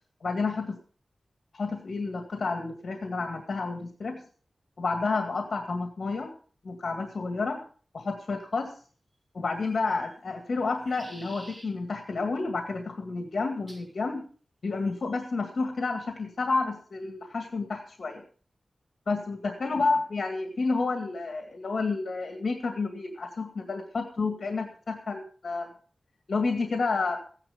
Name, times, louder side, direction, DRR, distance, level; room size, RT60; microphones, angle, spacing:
voice 1, 0.2-0.6 1.5-4.2 4.8-6.3 6.6-7.6 7.9-8.7 9.3-14.2 14.6-18.2 19.1-25.7 26.3-27.2, left 3 dB, 70° left, 5 dB, 2.1 m, -30 dB
sound 1, 9.6-10.1 10.6-11.7 13.7-13.9 14.9-15.3, right 1 dB, 25° right, 6.4 m, -50 dB
16.0 x 10.5 x 5.1 m, 0.42 s
wide cardioid pair, 85°, 0 cm